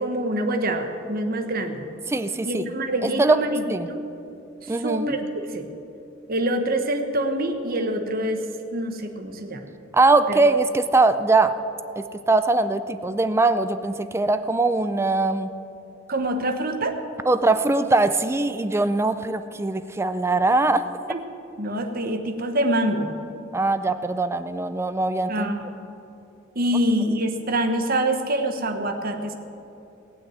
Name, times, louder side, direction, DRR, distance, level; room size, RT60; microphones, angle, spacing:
voice 1, 0.0-1.8 2.4-4.0 4.6-5.7 6.3-8.4 8.7-9.7 10.3-10.4 16.1-17.0 21.1-21.2 21.6-23.1 25.3-25.7 26.5-29.3, right 1 dB, 50° right, 5 dB, 1.2 m, -25 dB
voice 2, 2.1-2.7 3.0-3.4 3.7-3.9 4.7-5.2 9.9-11.5 12.0-15.5 17.3-20.9 23.5-25.5, right 2 dB, 15° right, 11 dB, 0.4 m, -21 dB
18.5 x 6.3 x 9.1 m, 2.8 s
head